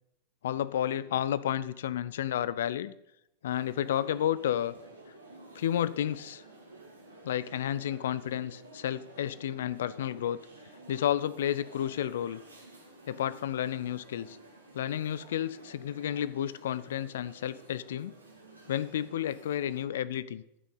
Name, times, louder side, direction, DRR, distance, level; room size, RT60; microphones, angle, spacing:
voice 1, 0.4-2.9 3.4-4.7 5.5-6.4 7.2-10.4 10.9-12.4 13.1-14.4 14.7-18.1 18.7-20.4, left 10 dB, 60° left, 17 dB, 0.4 m, -31 dB
sound 1, 3.4-19.8, right 2 dB, 80° right, 2.3 m, -52 dB
12.0 x 6.1 x 5.5 m, 0.82 s
figure-of-eight pair, 90°, 0 cm